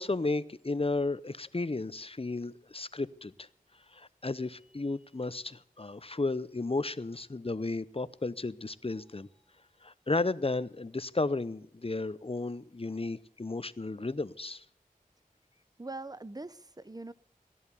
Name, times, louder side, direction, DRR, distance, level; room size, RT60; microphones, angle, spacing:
voice 1, 0.0-3.5 3.9-9.3 9.8-14.6, left 3 dB, 40° left, 0.7 m, -33 dB
voice 2, 15.8-17.1, right 2 dB, 25° right, 0.7 m, -42 dB
16.0 x 11.0 x 6.9 m
wide cardioid pair, 40°, 15 cm